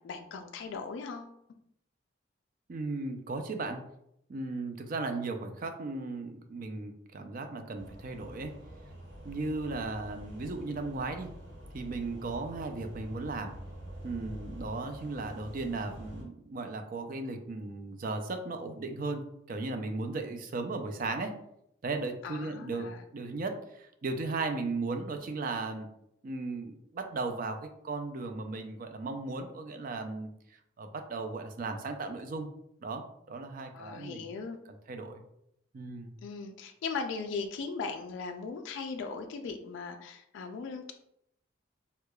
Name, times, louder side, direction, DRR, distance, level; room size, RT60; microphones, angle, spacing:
voice 1, 0.0-1.3 22.2-23.1 33.7-34.6 36.2-40.9, left 4 dB, 65° left, 5 dB, 0.3 m, -38 dB
voice 2, 2.7-3.8 4.3-8.5 9.2-11.3 11.7-13.5 14.0-21.3 21.8-25.9 26.2-30.3 30.8-32.5 32.8-34.4 34.9-35.2 35.7-36.1, right 3 dB, 45° right, 6 dB, 0.4 m, -36 dB
sound 1, 7.7-16.2, equal, 70° right, 1.2 m, -47 dB
4.7 x 2.2 x 2.2 m, 0.76 s
head